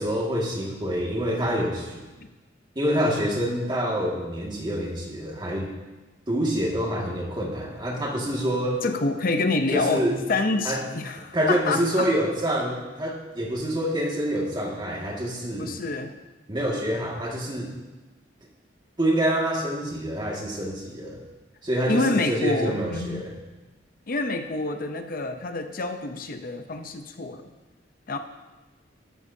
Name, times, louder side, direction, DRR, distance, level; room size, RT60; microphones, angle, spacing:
voice 1, 0.0-2.0 2.8-5.7 6.3-8.8 9.7-10.2 10.6-10.8 11.3-15.7 16.5-17.7 19.0-21.2 21.6-23.3, equal, 25° right, -2 dB, 2.0 m, -26 dB
voice 2, 8.8-10.0 10.3-12.1 15.6-16.2 21.9-23.3 24.1-27.5 28.1-28.2, left 2 dB, 50° left, 7 dB, 0.7 m, -27 dB
13.0 x 12.5 x 2.8 m, 1.2 s
head